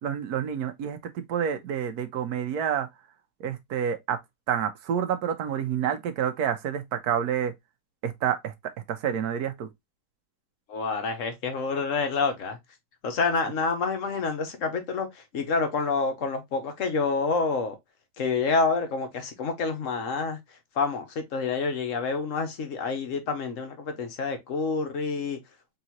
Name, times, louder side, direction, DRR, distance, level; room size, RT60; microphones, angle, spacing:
voice 1, 0.0-2.9 3.4-4.2 4.5-7.5 8.0-8.5 8.9-9.7, right 8 dB, 90° right, 1.3 m, -28 dB
voice 2, 10.7-12.6 13.0-17.8 18.2-20.4 20.7-25.4, left 4 dB, 60° left, 1.4 m, -28 dB
4.0 x 3.7 x 2.9 m
omnidirectional pair, 1.6 m